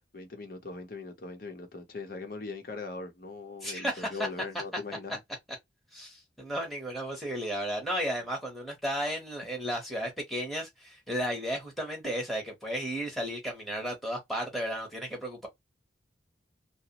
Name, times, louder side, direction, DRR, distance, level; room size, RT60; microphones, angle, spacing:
voice 1, 0.1-5.2, left 3 dB, 50° left, 0.7 m, -40 dB
voice 2, 3.6-4.3 5.9-15.5, equal, ahead, 0.8 m, -34 dB
2.9 x 2.0 x 2.8 m
head